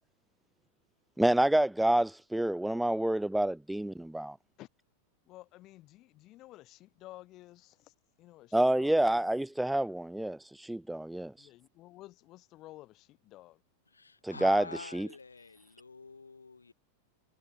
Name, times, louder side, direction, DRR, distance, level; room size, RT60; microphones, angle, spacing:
voice 1, 1.2-4.4 8.5-11.3 14.2-14.7 14.9-15.1, right 1 dB, 5° right, 0.3 m, -28 dB
voice 2, 5.3-9.2 11.4-13.6, left 17 dB, 35° left, 3.8 m, -53 dB
voice 3, 13.9-16.7, left 4 dB, 75° left, 3.5 m, -46 dB
figure-of-eight pair, 90°, 0 cm